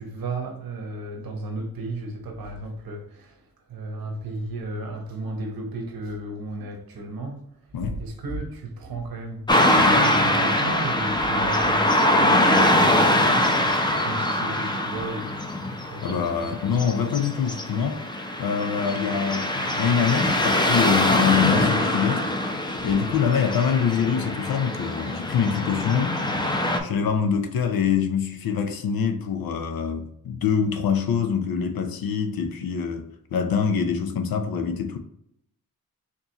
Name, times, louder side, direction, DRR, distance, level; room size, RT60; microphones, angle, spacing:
voice 1, 0.0-7.5 8.0-9.5 9.8-16.5, right 2 dB, 75° right, 1.0 m, -34 dB
Car passing by / Traffic noise roadway noise, 9.5-26.8, left 1 dB, 10° left, 0.6 m, -23 dB
voice 2, 16.0-18.0 18.4-22.3 22.8-26.2 26.8-35.0, left 7 dB, 80° left, 0.6 m, -25 dB
4.4 x 2.8 x 2.9 m
cardioid pair, 65°, 36 cm